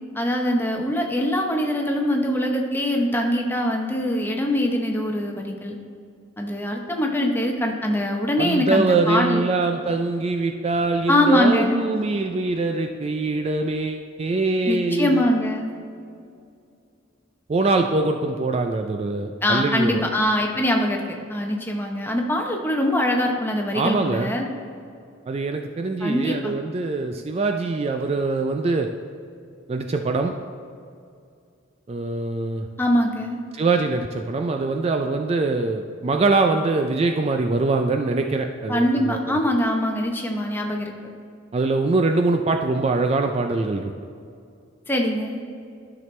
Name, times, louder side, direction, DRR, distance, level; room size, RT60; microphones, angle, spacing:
voice 1, 0.1-5.8 6.4-9.5 11.1-11.8 14.7-15.7 19.4-21.0 21.3-24.5 26.0-26.5 32.8-33.4 38.7-40.9 44.9-45.4, left 1 dB, 10° left, 1 dB, 0.8 m, -23 dB
voice 2, 8.4-15.2 17.5-20.0 23.7-24.3 25.3-28.9 29.7-30.3 31.9-32.7 33.5-39.2 41.5-43.9, right 3 dB, 30° right, 5 dB, 0.3 m, -23 dB
12.5 x 5.9 x 3.2 m, 2.4 s
head